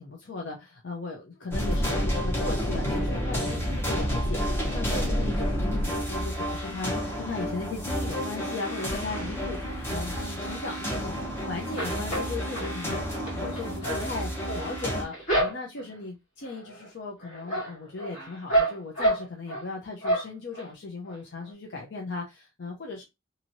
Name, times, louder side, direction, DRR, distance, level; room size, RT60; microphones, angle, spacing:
voice 1, 0.0-11.2 11.5-13.0 13.3-23.0, left 3 dB, 60° left, 0.5 m, -37 dB
sound 1, 1.5-15.0, equal, 10° left, 0.8 m, -30 dB
sound 2, 8.8-9.5 10.0-11.3 11.6-16.0 16.4-16.9 17.2-19.7 20.0-20.7 21.1-21.2 21.4-21.5, right 1 dB, 40° left, 1.8 m, -30 dB
2.9 x 2.6 x 2.6 m
head